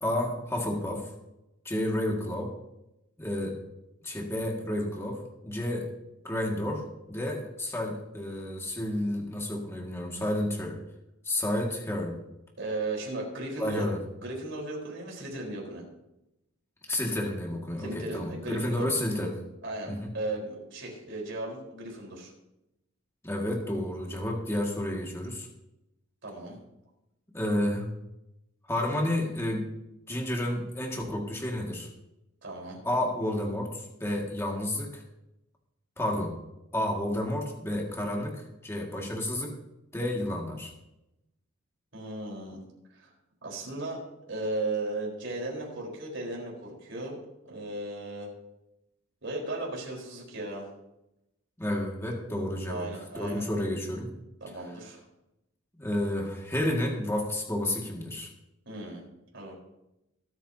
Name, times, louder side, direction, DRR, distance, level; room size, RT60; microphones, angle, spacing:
voice 1, 0.0-1.1 1.6-2.5 3.2-3.6 4.0-5.9 6.2-10.8 11.2-12.2 13.6-14.0 16.9-19.4 19.9-20.1 23.2-25.5 27.3-27.9 28.7-29.7 30.1-31.9 32.8-35.0 36.0-36.3 36.7-39.5 39.9-40.7 51.6-52.9 53.1-54.1 55.8-58.3, left 1 dB, 15° left, -1 dB, 2.1 m, -31 dB
voice 2, 12.6-13.9 14.2-15.9 17.8-18.9 19.6-22.3 26.2-26.6 32.4-32.8 41.9-42.6 42.9-43.1 43.4-44.0 44.3-48.3 49.2-50.7 52.7-53.4 54.4-55.0 58.7-59.0 59.3-59.6, right 2 dB, 60° right, -1 dB, 4.4 m, -36 dB
23.5 x 9.2 x 2.9 m, 0.89 s
head